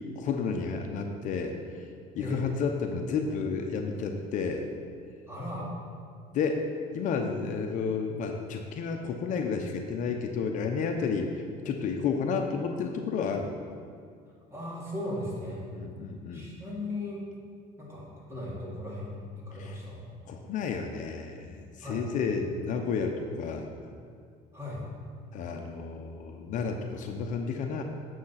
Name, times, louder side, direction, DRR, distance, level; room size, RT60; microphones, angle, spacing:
voice 1, 0.2-1.8 2.1-4.7 6.3-6.6 6.9-13.5 15.7-16.5 19.6-19.8 20.3-23.7 25.3-27.8, left 5 dB, 55° left, 4 dB, 0.9 m, -31 dB
voice 2, 5.3-5.7 14.5-15.7 16.3-17.2 17.8-20.1 21.8-22.0 24.5-24.8, left 1 dB, 15° right, -5 dB, 2.9 m, -37 dB
9.3 x 7.3 x 5.8 m, 2.2 s
cardioid pair, 130°, 16 cm